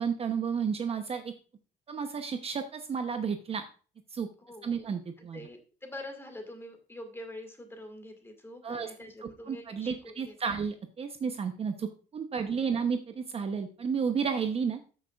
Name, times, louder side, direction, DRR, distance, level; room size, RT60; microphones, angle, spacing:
voice 1, 0.0-1.3 1.9-3.6 4.1-4.3 4.6-5.4 8.6-8.9 9.5-14.8, right 6 dB, 35° right, 7 dB, 0.8 m, -32 dB
voice 2, 4.4-4.8 5.2-10.6 12.4-12.8, left 1 dB, 15° left, 5 dB, 2.1 m, -46 dB
13.5 x 6.3 x 2.4 m, 0.38 s
cardioid pair, 110°, 17 cm